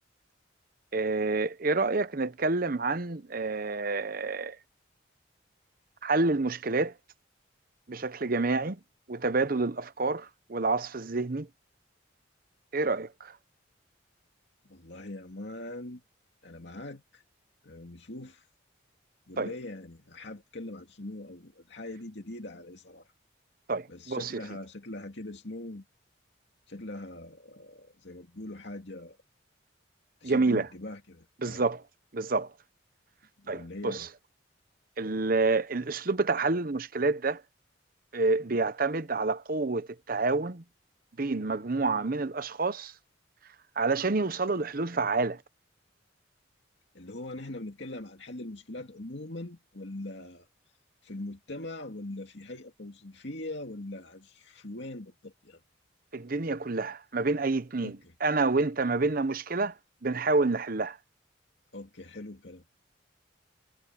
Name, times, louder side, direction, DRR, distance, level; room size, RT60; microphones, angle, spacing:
voice 1, 0.9-4.6 6.0-6.9 7.9-8.8 9.1-11.5 12.7-13.4 19.4-19.5 23.7-24.4 30.2-30.7 31.4-31.8 32.1-32.5 33.5-34.1 35.0-37.4 38.1-40.6 41.2-42.9 43.8-45.4 56.1-59.7 60.0-61.0, right 3 dB, 45° right, 0.8 m, -28 dB
voice 2, 14.7-16.0 16.4-17.2 17.6-18.5 19.3-23.1 23.9-25.8 26.7-29.2 30.2-31.7 33.4-34.1 46.9-50.5 51.0-55.6 57.8-58.1 61.7-62.6, left 1 dB, 60° left, 2.4 m, -42 dB
head